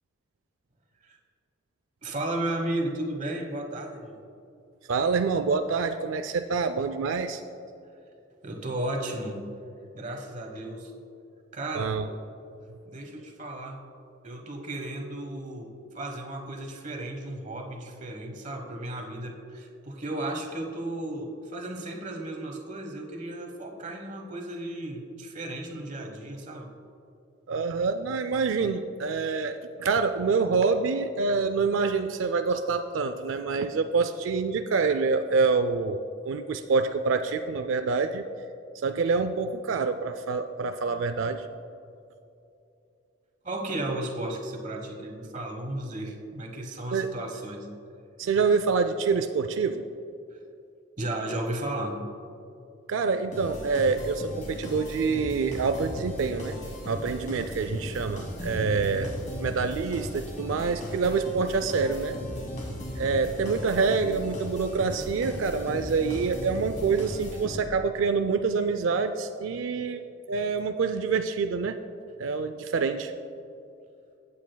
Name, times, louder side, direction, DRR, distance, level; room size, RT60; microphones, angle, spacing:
voice 1, 2.0-4.2 8.4-9.4 9.9-10.9 11.5-12.0 12.8-13.8 14.2-26.7 43.4-47.7 51.0-52.0 69.8-69.9, right 1 dB, 40° right, 3 dB, 1.1 m, -34 dB
voice 2, 4.9-7.4 11.7-12.1 27.5-36.0 36.2-38.2 38.7-41.5 46.9-47.1 48.2-49.8 52.9-56.5 56.8-59.1 59.4-62.2 63.0-71.8 72.2-73.1, right 4 dB, 85° right, 8 dB, 0.4 m, -26 dB
sound 1, 53.3-67.9, equal, 40° left, 2.3 m, -37 dB
15.5 x 8.4 x 2.2 m, 2.6 s
head